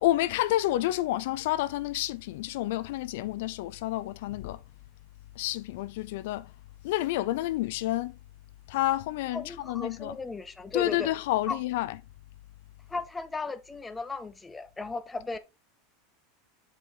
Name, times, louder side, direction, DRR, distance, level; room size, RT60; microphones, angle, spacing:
voice 1, 0.0-4.6 5.4-6.5 6.8-8.1 8.7-10.2 10.7-11.9, left 15 dB, 65° left, 0.5 m, -29 dB
voice 2, 9.3-11.1 11.5-11.6 12.9-15.4, left 3 dB, 10° left, 0.5 m, -36 dB
7.5 x 4.9 x 3.8 m
supercardioid pair, 160°, 0 cm